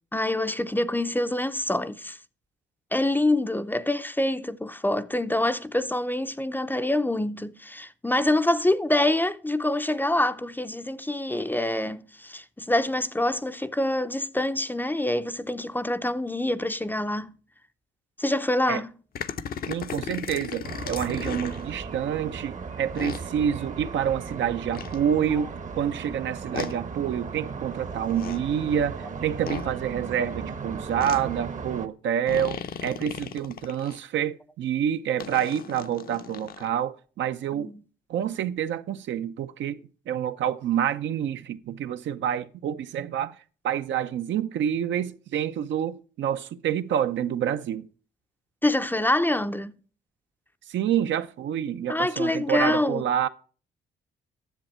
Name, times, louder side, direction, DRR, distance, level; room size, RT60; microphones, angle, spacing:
voice 1, 0.1-2.2 2.9-17.3 18.2-18.9 37.5-37.7 48.6-49.7 51.9-53.0, left 1 dB, 10° left, 0.5 m, -26 dB
sound 1, 19.1-21.6 23.0-23.2 24.7-25.0 26.5-26.7 28.0-28.4 29.5-29.7 31.0-31.2 32.3-34.0 35.2-36.7, left 7 dB, 50° left, 0.7 m, -36 dB
voice 2, 19.7-37.7 38.1-43.4 43.6-47.9 50.7-53.3, right 9 dB, 70° right, 0.6 m, -28 dB
sound 2, 20.6-31.9, right 5 dB, 40° right, 0.9 m, -36 dB
10.5 x 7.2 x 4.3 m
cardioid pair, 90°, 20 cm